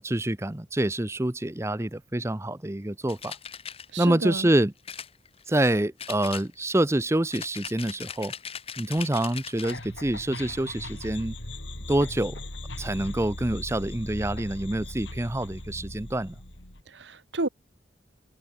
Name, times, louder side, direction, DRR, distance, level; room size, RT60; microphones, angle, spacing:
voice 1, 0.0-3.3 4.0-4.7 5.5-8.3 8.8-11.4 11.9-12.4 12.8-16.3, right 1 dB, 15° right, 0.7 m, -26 dB
sound 1, 3.1-3.9 4.8-5.7 6.0-6.8 7.3-9.8, left 7 dB, 30° left, 2.5 m, -39 dB
voice 2, 3.9-4.5 16.9-17.5, right 2 dB, 75° right, 1.6 m, -31 dB
sound 2, 9.6-16.8, left 1 dB, 85° left, 5.1 m, -39 dB
head